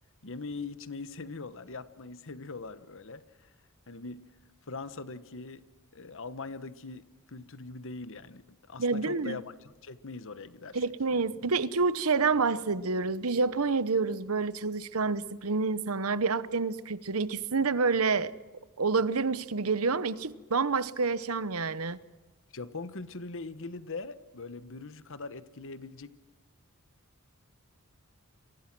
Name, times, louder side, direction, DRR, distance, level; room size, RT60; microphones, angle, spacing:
voice 1, 0.2-3.5 3.9-4.2 4.7-5.6 5.9-9.5 9.8-10.8 22.5-26.1, left 3 dB, 60° left, 1.2 m, -41 dB
voice 2, 8.8-9.4 10.7-18.3 18.8-22.0, right 4 dB, 70° right, 1.0 m, -28 dB
29.0 x 23.5 x 6.2 m
head